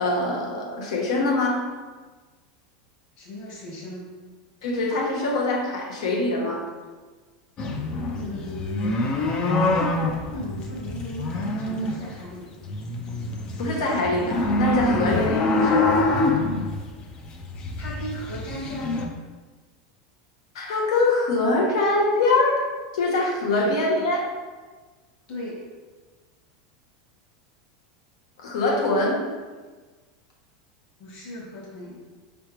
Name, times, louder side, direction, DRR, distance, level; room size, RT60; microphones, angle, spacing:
voice 1, 0.0-1.7 4.6-6.6 13.6-15.9 20.5-24.3 28.4-29.2, left 2 dB, 85° left, -1 dB, 1.1 m, -23 dB
voice 2, 3.2-4.1 8.1-9.0 9.7-12.5 14.8-15.1 17.8-19.0 23.4-23.8 25.3-25.6 31.0-32.0, equal, 45° left, -5 dB, 1.4 m, -37 dB
sound 1, 7.6-12.3 12.6-19.1, left 2 dB, 30° left, 0.4 m, -25 dB
4.7 x 3.4 x 3.0 m, 1.3 s
supercardioid pair, 155°, 3 cm